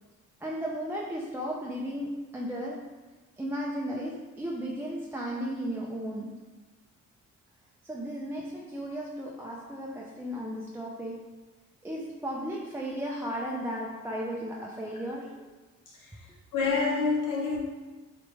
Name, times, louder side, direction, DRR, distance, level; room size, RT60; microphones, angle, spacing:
voice 1, 0.4-2.8 3.4-6.4 7.8-11.2 11.8-15.3, equal, 10° right, -4 dB, 0.4 m, -35 dB
voice 2, 16.5-17.6, left 4 dB, 85° left, -3 dB, 1.1 m, -27 dB
4.6 x 2.5 x 3.2 m, 1.2 s
cardioid pair, 90°, 30 cm